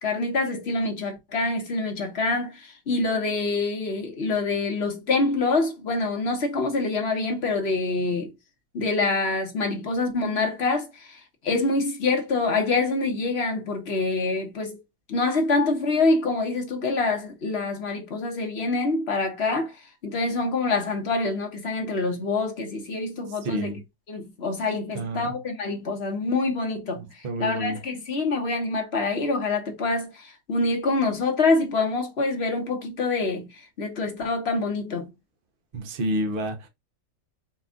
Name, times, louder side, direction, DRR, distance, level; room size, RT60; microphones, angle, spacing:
voice 1, 0.0-8.3 8.7-14.8 15.1-19.7 20.0-23.8 24.1-35.1, left 3 dB, 45° left, 1.1 m, -26 dB
voice 2, 23.4-23.8 24.9-25.3 27.0-27.8 35.7-36.7, right 1 dB, 45° right, 0.8 m, -29 dB
4.3 x 2.4 x 3.6 m
omnidirectional pair, 1.8 m